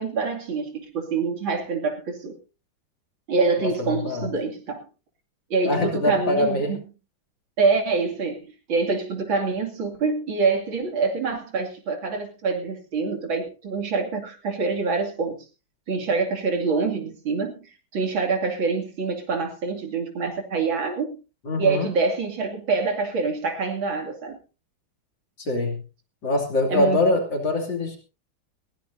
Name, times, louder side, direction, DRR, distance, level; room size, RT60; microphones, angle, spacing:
voice 1, 0.0-2.3 3.3-4.9 5.5-6.9 7.6-8.4 8.7-15.4 15.9-21.2 21.6-24.4 26.7-27.0, right 4 dB, 70° right, 3 dB, 3.4 m, -25 dB
voice 2, 3.6-4.3 5.6-6.7 21.4-21.9 25.4-25.8 26.2-28.0, left 2 dB, 60° left, 3 dB, 3.6 m, -23 dB
20.5 x 15.5 x 2.7 m, 0.32 s
omnidirectional pair, 2.3 m